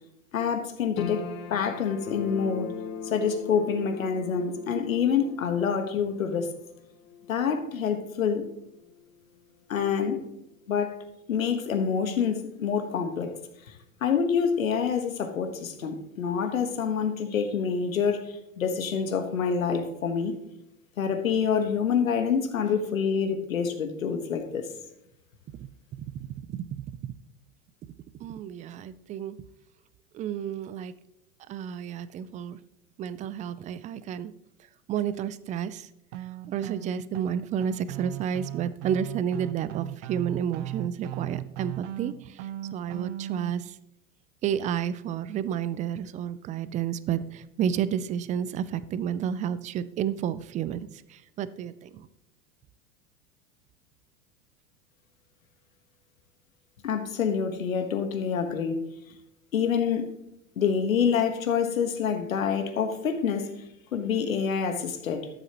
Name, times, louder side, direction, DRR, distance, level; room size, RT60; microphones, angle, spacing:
voice 1, 0.3-1.2 1.5-2.7 3.0-6.5 7.3-8.4 9.7-10.2 10.7-11.0 11.3-13.3 14.0-18.3 18.6-20.3 21.0-24.7 56.8-58.8 59.5-60.1 60.6-63.5 63.9-65.3, left 6 dB, 90° left, 8 dB, 1.4 m, -27 dB
sound 1, 1.0-13.4 13.6-14.6 15.0-15.1, left 6 dB, 40° left, 1.4 m, -46 dB
Bass guitar, 2.1-6.3, left 6 dB, 25° left, 0.7 m, -40 dB
voice 2, 25.5-27.1 28.2-29.4 30.1-31.0 31.5-32.6 33.0-34.3 34.9-35.9 36.2-43.8 44.4-52.1, right 9 dB, 20° right, 15 dB, 0.3 m, -31 dB
sound 2, 36.1-43.5, right 13 dB, 65° right, 0.8 m, -37 dB
13.0 x 7.8 x 3.0 m, 0.83 s
hypercardioid pair, 100°, 39 cm